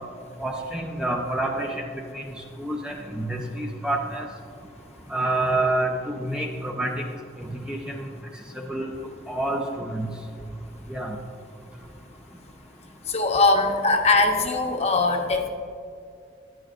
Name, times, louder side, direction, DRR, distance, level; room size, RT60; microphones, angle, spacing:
voice 1, 0.4-1.7 2.1-2.3 2.6-4.3 5.1-6.9 7.5-8.1 8.6-8.9 9.3-10.1 10.9-11.2, right 2 dB, 5° right, 1 dB, 0.6 m, -28 dB
voice 2, 13.1-15.5, left 3 dB, 35° left, 3 dB, 0.9 m, -21 dB
14.0 x 10.5 x 2.5 m, 2.4 s
head